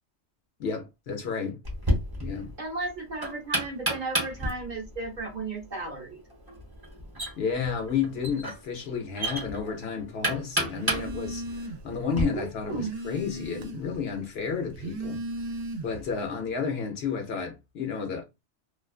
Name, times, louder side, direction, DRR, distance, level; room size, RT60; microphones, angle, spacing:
voice 1, 0.6-1.6 2.2-2.5 7.4-15.2 15.8-18.2, left 6 dB, 65° left, 0.7 m, -31 dB
Knock, 1.6-12.2, right 1 dB, 20° right, 0.9 m, -32 dB
voice 2, 2.6-6.2 12.1-12.9, right 3 dB, 45° right, 0.7 m, -34 dB
Telephone, 10.7-12.0 12.3-14.0 14.6-16.1, right 1 dB, 85° right, 0.9 m, -36 dB
2.4 x 2.2 x 2.3 m
omnidirectional pair, 1.3 m